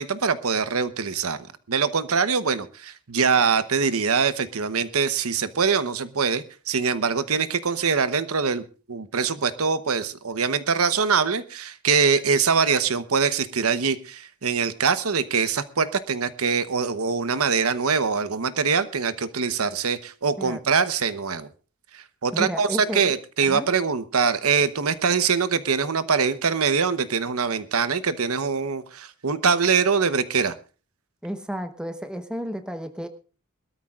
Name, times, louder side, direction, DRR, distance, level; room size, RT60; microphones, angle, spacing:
voice 1, 0.0-1.4 1.7-21.5 21.9-30.5, right 5 dB, 90° right, 13 dB, 1.0 m, -23 dB
voice 2, 22.3-23.0 23.4-23.7 31.2-33.1, equal, 5° right, 8 dB, 1.1 m, -32 dB
22.5 x 13.0 x 2.4 m, 0.35 s
head